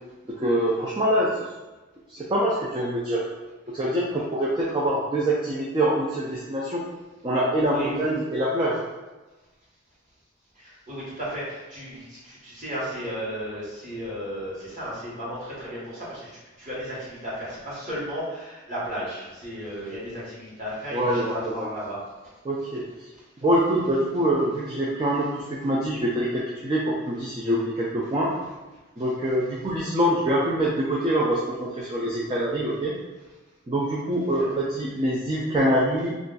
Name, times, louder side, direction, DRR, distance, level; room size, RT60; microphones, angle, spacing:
voice 1, 0.4-1.4 2.1-3.2 3.7-6.8 7.2-8.8 20.9-21.7 22.4-22.8 23.4-28.3 29.0-32.9 33.7-36.1, right 1 dB, 25° right, -6 dB, 0.4 m, -24 dB
voice 2, 10.5-22.0 29.1-29.2 34.4-34.5, equal, 40° right, -8 dB, 1.2 m, -34 dB
2.5 x 2.3 x 3.8 m, 1.2 s
head